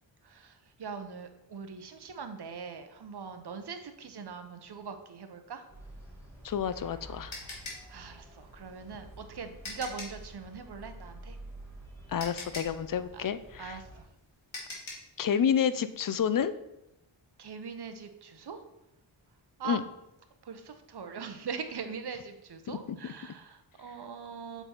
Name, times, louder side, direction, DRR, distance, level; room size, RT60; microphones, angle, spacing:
voice 1, 0.2-5.6 7.4-7.6 7.9-11.4 13.1-13.2 13.6-14.1 17.4-18.6 19.6-19.8 20.4-24.6, right 5 dB, 55° right, 7 dB, 0.9 m, -41 dB
sound 1, 5.7-14.0, right 1 dB, 5° left, 2.1 m, -49 dB
sound 2, 6.4-10.3 11.7-11.8 12.2-15.2, left 2 dB, 70° left, 2.0 m, -43 dB
voice 2, 6.4-7.3 12.1-13.8 15.2-16.5 19.6-19.8 22.7-23.0, left 8 dB, 45° left, 13 dB, 0.5 m, -29 dB
6.8 x 4.2 x 4.3 m, 0.88 s
wide cardioid pair, 75°, 48 cm